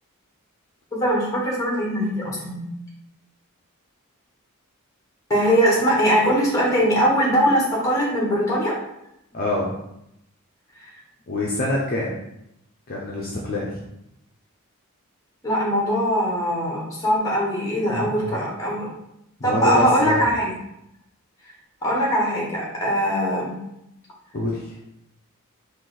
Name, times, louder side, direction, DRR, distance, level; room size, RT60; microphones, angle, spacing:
voice 1, 0.9-2.6 5.3-8.8 15.4-18.9 19.4-20.5 21.8-23.5, equal, 15° left, -4 dB, 1.3 m, -21 dB
voice 2, 9.3-9.7 11.3-12.1 12.9-13.8 17.9-18.4 19.4-20.2 24.3-24.7, left 1 dB, 40° left, -4 dB, 0.6 m, -26 dB
4.3 x 2.6 x 3.8 m, 0.81 s
head